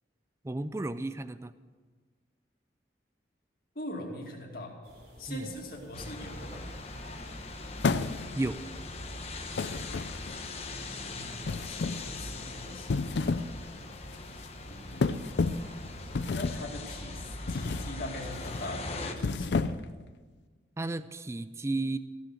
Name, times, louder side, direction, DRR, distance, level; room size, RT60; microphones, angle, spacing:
voice 1, 0.4-1.5 5.3-5.5 8.4-8.6 20.8-22.0, right 2 dB, 15° right, 13 dB, 0.4 m, -33 dB
voice 2, 3.7-4.8 5.2-6.7 11.1-11.4 11.6-13.8 14.7-15.3 16.3-19.6, left 1 dB, 55° left, -1 dB, 2.4 m, -42 dB
sound 1, 4.8-16.5, equal, 60° right, 3.8 m, -53 dB
sound 2, 5.9-19.1, left 2 dB, 35° left, 1.0 m, -41 dB
sound 3, 7.8-8.5 9.6-10.5 11.4-12.1 12.7-13.6 13.9-14.2 15.0-15.7 16.1-16.7 17.5-17.9 18.3-18.6 19.1-20.0, left 4 dB, 70° left, 0.5 m, -30 dB
15.0 x 6.5 x 7.9 m, 1.4 s
head